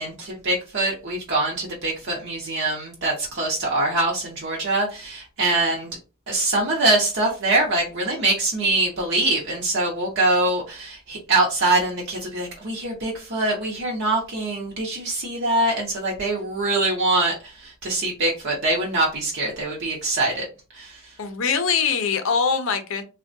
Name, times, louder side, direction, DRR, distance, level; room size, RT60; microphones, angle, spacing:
voice 1, 0.0-5.9 6.3-20.5 20.7-21.0, right 2 dB, 55° right, 0.7 m, -23 dB
voice 2, 21.2-23.0, left 6 dB, 60° left, 0.5 m, -23 dB
3.4 x 2.2 x 2.6 m
head